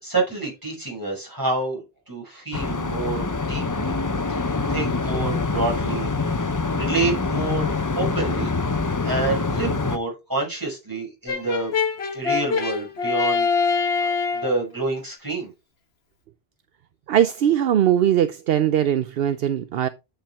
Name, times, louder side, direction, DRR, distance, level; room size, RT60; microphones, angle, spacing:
voice 1, 0.0-3.9 4.3-4.4 4.7-6.1 6.7-8.5 9.0-11.7 12.1-15.5, right 3 dB, 20° right, 5.6 m, -28 dB
sound 1, 2.5-10.0, left 3 dB, 25° left, 0.5 m, -25 dB
Brass instrument, 11.3-14.6, left 5 dB, 80° left, 1.6 m, -24 dB
voice 2, 17.1-19.9, right 10 dB, 70° right, 0.8 m, -20 dB
10.0 x 5.9 x 3.5 m
omnidirectional pair, 1.0 m